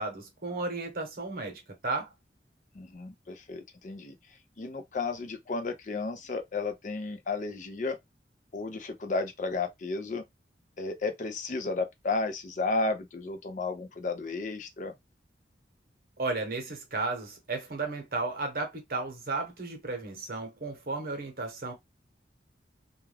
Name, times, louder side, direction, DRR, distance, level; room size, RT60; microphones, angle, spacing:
voice 1, 0.0-2.1 16.2-21.7, right 3 dB, 55° right, 0.9 m, -34 dB
voice 2, 2.7-4.2 4.6-8.0 8.5-10.2 10.8-14.9, left 3 dB, 45° left, 0.4 m, -33 dB
2.3 x 2.2 x 3.2 m
head